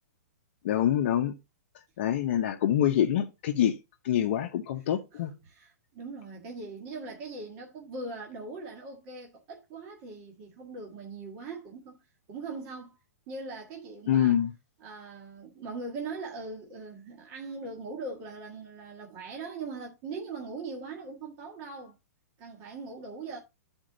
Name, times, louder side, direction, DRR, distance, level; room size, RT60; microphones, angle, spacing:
voice 1, 0.6-1.3 2.0-3.8 4.0-5.3 14.1-14.5, left 10 dB, 45° left, 0.8 m, -25 dB
voice 2, 5.1-12.0 12.3-13.0 13.3-14.4 14.8-21.9 22.4-23.4, right 3 dB, 30° right, 1.6 m, -40 dB
12.0 x 4.4 x 3.9 m
hypercardioid pair, 165°, 9 cm